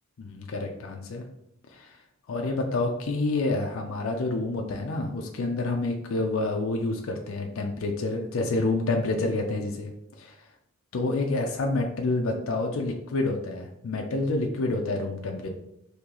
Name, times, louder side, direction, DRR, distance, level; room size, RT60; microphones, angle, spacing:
voice 1, 0.2-1.3 1.7-2.0 2.3-9.9 10.2-10.4 10.9-15.5, left 2 dB, 60° left, 2 dB, 0.4 m, -28 dB
3.8 x 2.8 x 2.9 m, 0.82 s
head